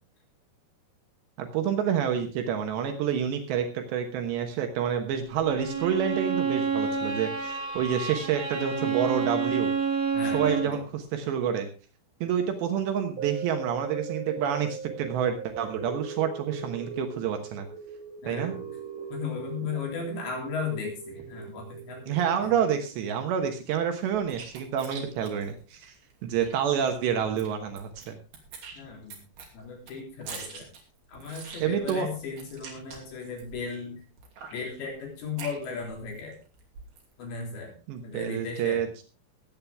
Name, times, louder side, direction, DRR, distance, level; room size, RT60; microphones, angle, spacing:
voice 1, 1.4-9.7 10.2-11.7 12.2-17.7 18.3-18.6 22.1-25.9 26.2-28.2 31.6-32.1 37.9-39.0, right 8 dB, 75° right, 5 dB, 3.4 m, -28 dB
Bowed string instrument, 5.4-10.8, right 5 dB, 5° left, 2.7 m, -29 dB
voice 2, 10.1-10.8 18.2-18.6 19.1-22.5 28.8-29.2 29.5-30.7 31.1-34.0 34.5-36.4 37.2-37.7 38.0-38.8, left 5 dB, 80° left, 0 dB, 5.7 m, -36 dB
sound 1, 13.2-23.5 24.0-24.1, right 6 dB, 35° right, 1.4 m, -40 dB
sound 2, 24.0-26.5 26.9-27.0 27.2-28.1 28.3-33.7 34.2-36.2 36.5-37.1, right 5 dB, 60° right, 4.5 m, -44 dB
21.0 x 8.8 x 3.5 m, 0.33 s
omnidirectional pair, 5.1 m